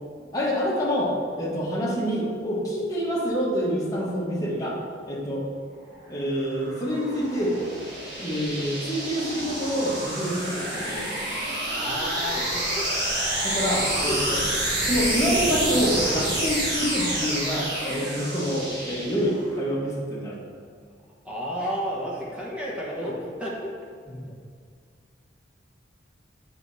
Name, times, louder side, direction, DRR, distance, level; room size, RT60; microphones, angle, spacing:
voice 1, 0.3-4.8 5.1-5.4 6.1-7.6 8.2-11.1 13.4-14.4 14.9-20.4 24.1-24.3, equal, 20° left, -7 dB, 1.3 m, -27 dB
sound 1, 6.1-19.5, right 1 dB, 60° right, 1.6 m, -28 dB
voice 2, 11.7-12.9 13.7-14.4 21.2-23.7, equal, 5° right, -6 dB, 1.2 m, -32 dB
8.1 x 4.8 x 2.7 m, 2.1 s
head